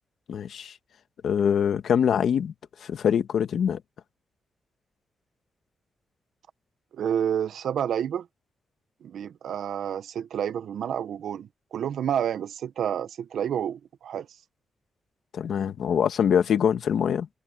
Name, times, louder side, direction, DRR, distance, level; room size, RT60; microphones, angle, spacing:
voice 1, 0.3-0.7 1.2-2.5 2.8-3.8 15.3-17.3, left 8 dB, 65° left, 1.5 m, -24 dB
voice 2, 6.9-8.3 9.0-14.3, right 9 dB, 75° right, 1.0 m, -29 dB
wide cardioid pair, 150°, 0 cm